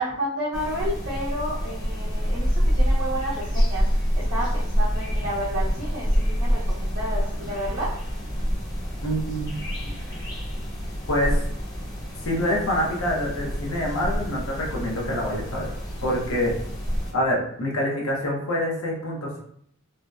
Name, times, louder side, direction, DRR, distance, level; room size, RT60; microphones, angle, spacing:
voice 1, 0.0-7.9, right 1 dB, 65° right, -8 dB, 0.6 m, -31 dB
sound 1, 0.5-17.1, equal, 15° left, 0.6 m, -27 dB
voice 2, 9.0-9.5 11.1-11.4 12.2-15.7 16.0-16.5 17.1-19.4, equal, 70° left, -2 dB, 0.6 m, -26 dB
2.7 x 2.0 x 2.3 m, 0.68 s
head